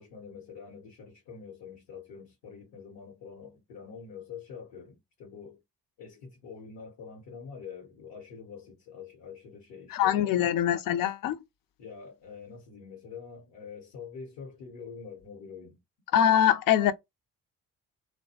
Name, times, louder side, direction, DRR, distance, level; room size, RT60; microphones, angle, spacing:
voice 1, 0.0-5.6 6.0-10.4 11.8-15.8, left 6 dB, 80° left, 1.0 m, -45 dB
voice 2, 9.9-11.4 16.1-16.9, left 10 dB, 55° left, 0.5 m, -23 dB
2.3 x 2.2 x 2.7 m
hypercardioid pair, 50°, 40 cm